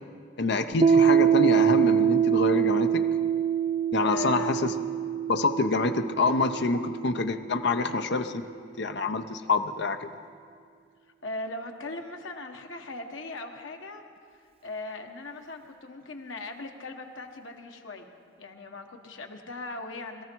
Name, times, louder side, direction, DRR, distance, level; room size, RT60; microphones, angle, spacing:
voice 1, 0.4-3.0 3.9-4.7 5.3-8.4 8.8-10.1, left 3 dB, 60° left, 8 dB, 0.7 m, -26 dB
Piano, 0.8-8.1, right 8 dB, 30° right, 0.3 m, -24 dB
voice 2, 4.0-4.7 11.2-14.0 14.6-18.1 18.4-20.2, left 2 dB, 90° left, 3 dB, 1.3 m, -39 dB
21.5 x 14.0 x 4.6 m, 2.2 s
head